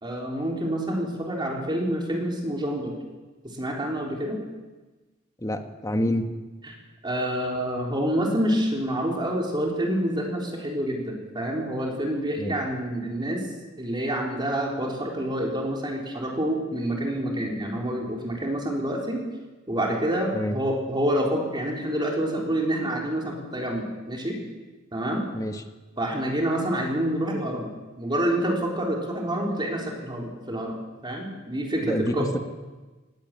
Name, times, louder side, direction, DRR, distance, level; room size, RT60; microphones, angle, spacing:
voice 1, 0.0-2.9 3.4-4.4 6.1-6.2 6.6-6.7 7.0-13.4 13.8-19.2 19.7-24.4 24.9-25.2 26.0-27.7 28.0-30.7 31.0-32.3, right 1 dB, 20° right, -1 dB, 3.9 m, -27 dB
voice 2, 5.4-6.3 12.4-12.5 20.3-20.6 25.3-25.6 31.8-32.4, left 1 dB, 15° left, 6 dB, 1.6 m, -27 dB
19.5 x 16.5 x 9.1 m, 1.2 s
head